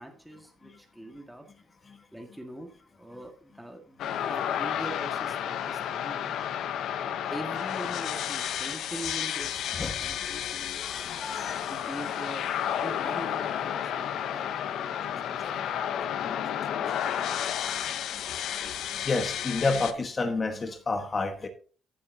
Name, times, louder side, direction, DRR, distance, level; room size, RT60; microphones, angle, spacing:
voice 1, 0.0-1.5 2.1-2.7 3.0-4.0 4.3-6.3 7.0-11.3 11.7-12.5 12.7-16.4 16.7-17.5, right 1 dB, 5° right, 1.7 m, -43 dB
sound 1, 4.0-19.9, left 9 dB, 80° left, 0.8 m, -32 dB
voice 2, 10.8-11.7 15.4-15.5 17.4-17.5 19.0-21.5, left 3 dB, 35° left, 1.4 m, -30 dB
14.5 x 7.2 x 2.8 m
cardioid pair, 90°, 0 cm